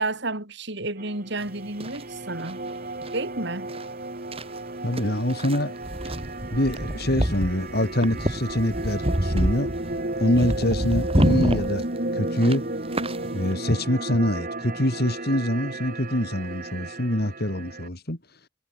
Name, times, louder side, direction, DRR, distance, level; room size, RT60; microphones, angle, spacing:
voice 1, 0.0-2.6 3.1-3.7, right 2 dB, 60° right, 4.9 m, -31 dB
sound 1, 1.0-17.9, right 2 dB, 45° right, 4.2 m, -33 dB
sound 2, 1.4-13.5, right 1 dB, 30° right, 3.3 m, -28 dB
voice 2, 4.8-5.7 6.5-9.7 10.2-11.9 12.1-12.7 13.3-18.2, left 1 dB, 55° left, 4.4 m, -25 dB
head